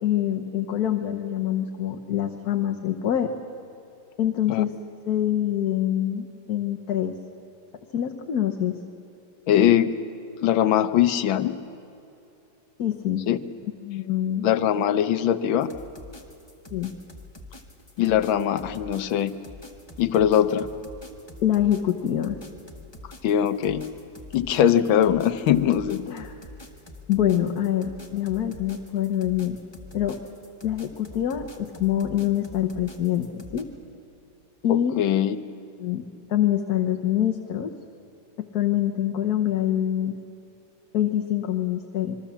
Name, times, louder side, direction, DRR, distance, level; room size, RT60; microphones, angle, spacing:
voice 1, 0.0-3.3 4.2-4.7 5.1-7.1 7.9-8.8 12.8-13.2 13.8-14.5 16.7-16.9 21.4-22.4 26.1-26.3 27.1-29.6 29.9-30.2 30.6-33.7 34.6-35.0 35.8-36.0 36.3-37.7 38.4-40.2 40.9-42.2, left 11 dB, 55° left, 4 dB, 1.4 m, -25 dB
voice 2, 9.5-9.9 10.4-11.6 13.3-13.4 14.4-15.7 18.0-19.3 20.0-20.7 23.2-23.9 24.3-26.0 34.7-35.4, left 10 dB, 90° left, 12 dB, 1.6 m, -21 dB
sound 1, 15.6-33.6, left 2 dB, 15° left, 1.3 m, -45 dB
27.0 x 22.5 x 7.3 m, 2.8 s
omnidirectional pair, 2.1 m